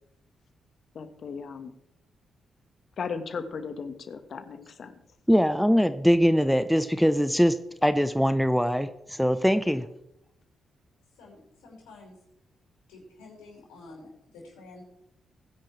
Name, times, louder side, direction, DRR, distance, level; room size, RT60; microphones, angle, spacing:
voice 1, 0.9-1.7 3.0-4.9, left 5 dB, 60° left, 9 dB, 1.6 m, -36 dB
voice 2, 5.3-7.6 7.8-9.9, equal, ahead, 11 dB, 0.9 m, -22 dB
voice 3, 11.1-12.1 12.9-14.8, left 2 dB, 80° left, -2 dB, 5.3 m, -49 dB
21.0 x 10.5 x 3.4 m, 0.80 s
hypercardioid pair, 40°, 0 cm